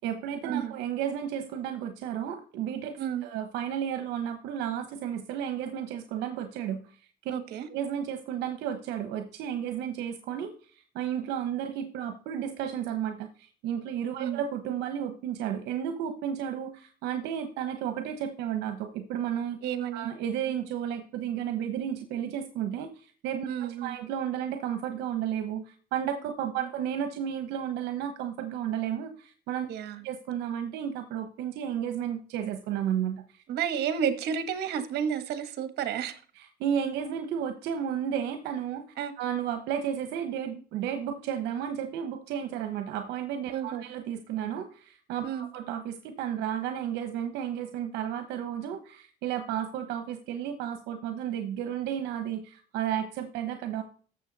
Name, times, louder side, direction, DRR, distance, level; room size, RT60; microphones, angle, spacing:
voice 1, 0.0-7.0 7.2-7.3 7.7-19.6 19.9-29.7 30.0-33.4 36.4-38.8 39.2-53.8, right 9 dB, 90° right, 1.1 m, -33 dB
voice 2, 7.3-7.7 14.2-14.4 19.6-20.1 23.5-24.0 26.6-26.7 29.7-30.0 33.5-36.2 39.0-39.1 43.5-43.8 45.2-45.5, right 8 dB, 75° right, 1.5 m, -31 dB
12.5 x 7.2 x 4.1 m
cardioid pair, 110°, 17 cm